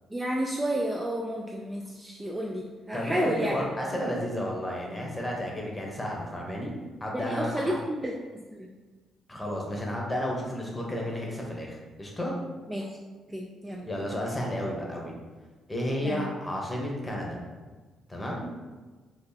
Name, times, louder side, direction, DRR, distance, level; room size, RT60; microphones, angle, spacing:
voice 1, 0.1-3.5 7.1-8.7 12.7-12.9 13.3-13.9 16.0-16.3, equal, 15° right, -1 dB, 0.3 m, -31 dB
voice 2, 2.9-6.8 7.0-7.7 9.3-12.3 13.8-15.1 15.7-17.4 18.1-18.5, equal, 15° left, -2 dB, 0.8 m, -32 dB
2.7 x 2.3 x 3.8 m, 1.3 s
cardioid pair, 90°, 0 cm